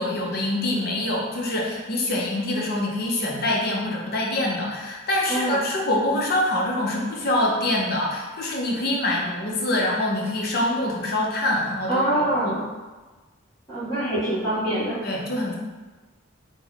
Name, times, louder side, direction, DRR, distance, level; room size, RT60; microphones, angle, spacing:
voice 1, 0.0-12.0 12.4-12.5 15.0-15.6, left 1 dB, 50° left, -2 dB, 0.6 m, -25 dB
voice 2, 5.3-5.6 11.9-12.6 13.7-15.0, right 1 dB, 20° left, -17 dB, 1.2 m, -24 dB
3.1 x 2.1 x 3.8 m, 1.3 s
head